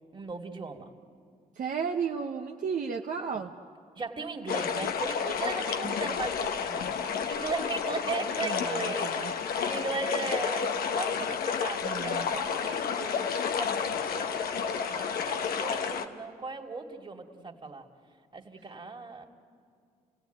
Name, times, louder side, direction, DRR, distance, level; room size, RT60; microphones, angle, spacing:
voice 1, 0.1-0.9 4.0-17.8 18.3-19.3, right 3 dB, 30° right, 2 dB, 2.5 m, -38 dB
voice 2, 1.5-3.5 5.8-5.9 8.4-9.3 11.8-12.4, right 6 dB, 60° right, 1 dB, 1.0 m, -34 dB
sound 1, 4.5-16.1, left 6 dB, 80° left, 1.2 m, -31 dB
29.5 x 17.0 x 9.3 m, 2.3 s
cardioid pair, 80°, 15 cm